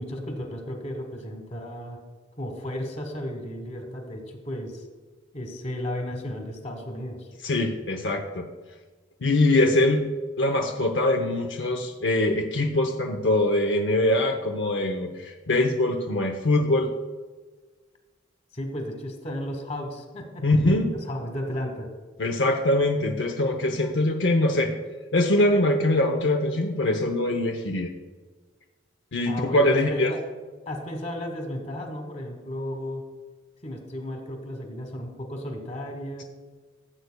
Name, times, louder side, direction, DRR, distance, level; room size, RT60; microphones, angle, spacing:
voice 1, 0.0-2.0 2.4-4.9 5.3-7.3 18.5-20.6 21.1-21.9 29.2-30.2 30.7-33.0 33.6-36.2, left 1 dB, 35° left, 4 dB, 1.3 m, -34 dB
voice 2, 7.4-8.4 9.2-10.0 10.4-16.9 20.4-20.9 22.2-24.7 25.1-27.9 29.1-30.1, left 1 dB, 70° left, 3 dB, 0.7 m, -23 dB
14.5 x 7.9 x 2.2 m, 1.4 s
head